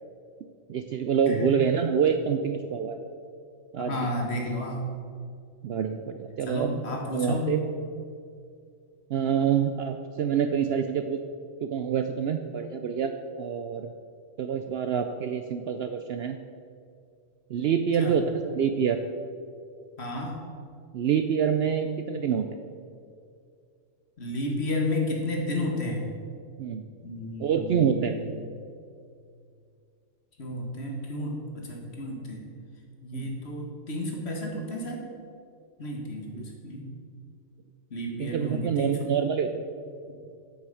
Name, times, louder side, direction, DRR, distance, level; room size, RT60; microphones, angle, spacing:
voice 1, 0.7-3.0 3.7-4.1 5.6-7.6 9.1-11.2 11.6-13.1 13.4-13.9 14.4-16.4 17.5-19.0 20.9-22.5 26.6-26.9 27.4-28.3 33.1-33.3 36.3-36.5 38.2-39.5, right 7 dB, 65° right, 7 dB, 0.7 m, -26 dB
voice 2, 3.8-4.9 6.5-7.5 18.0-18.1 20.0-20.4 24.2-26.0 27.0-28.3 30.4-32.4 33.0-35.0 35.8-36.9 37.9-39.1, left 1 dB, 55° left, 1 dB, 1.7 m, -32 dB
8.0 x 6.6 x 7.0 m, 2.3 s
omnidirectional pair, 1.4 m